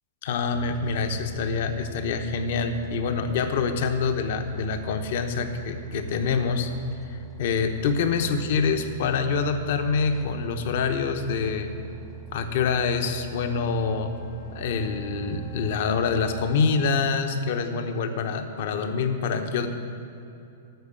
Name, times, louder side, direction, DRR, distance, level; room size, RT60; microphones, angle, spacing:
voice 1, 0.2-6.7 7.1-11.7 12.3-14.1 14.5-19.7, left 5 dB, 60° left, 7 dB, 0.9 m, -26 dB
sound 1, 0.5-16.6, right 6 dB, 5° left, 0.6 m, -42 dB
Wind instrument woodwind instrument, 13.2-17.1, right 1 dB, 90° left, 2.2 m, -48 dB
9.3 x 6.6 x 8.8 m, 2.7 s
hypercardioid pair, 140°, 0 cm